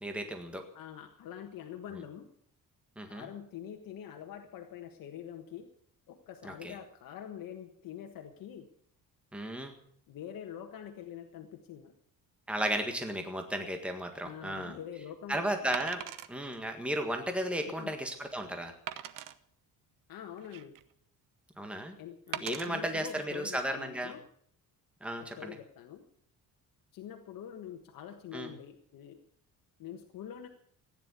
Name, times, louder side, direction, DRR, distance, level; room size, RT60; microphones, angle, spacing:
voice 1, 0.0-0.6 3.0-3.3 6.4-6.7 9.3-9.7 12.5-14.8 15.3-16.0 16.3-18.7 21.6-22.0 22.4-24.1 25.0-25.5 28.3-28.5, right 1 dB, 5° right, 5 dB, 1.7 m, -34 dB
voice 2, 0.7-2.3 3.1-5.7 6.1-8.7 10.1-11.9 14.2-15.7 17.8-17.9 20.1-20.8 22.0-24.2 25.2-26.0 26.9-29.2 29.8-30.5, left 9 dB, 75° left, 4 dB, 1.5 m, -45 dB
Wood, 14.1-14.3 15.7-16.3 17.0-17.1 17.6-17.7 18.9-19.4 20.1-20.9 22.3-22.7 23.4-23.6, right 11 dB, 70° right, 1.0 m, -40 dB
15.5 x 10.5 x 8.2 m, 0.65 s
cardioid pair, 160°, 34 cm